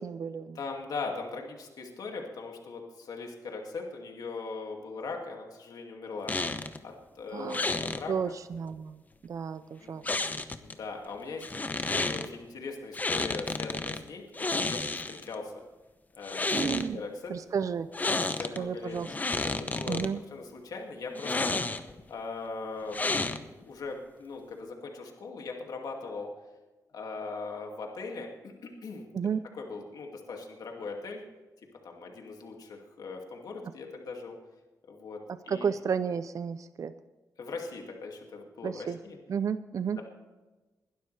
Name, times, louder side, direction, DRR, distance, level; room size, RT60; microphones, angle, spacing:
voice 1, 0.0-0.6 7.3-7.7 8.1-9.0 9.2-10.1 16.5-17.0 17.3-17.9 18.6-19.1 19.9-20.2 29.1-29.4 35.5-36.9 38.6-39.0 39.3-40.0, right 6 dB, 55° right, 12 dB, 0.5 m, -32 dB
voice 2, 0.5-6.4 6.8-8.1 9.8-10.0 10.6-15.5 16.1-17.3 18.2-19.0 19.4-20.0 20.3-21.6 22.1-23.0 23.3-26.3 26.9-28.3 28.8-29.0 29.5-31.2 31.8-34.3 34.9-35.7 37.4-39.2 39.8-40.0, left 4 dB, 75° left, 1 dB, 2.3 m, -40 dB
sound 1, 6.3-6.8 7.5-8.0 10.0-10.7 11.4-12.3 12.9-14.0 14.3-15.3 16.2-16.9 17.9-18.6 18.9-20.1 21.2-22.0 22.9-23.6, left 3 dB, 25° left, 0.9 m, -31 dB
21.5 x 12.0 x 3.3 m, 1.2 s
wide cardioid pair, 105°, 7 cm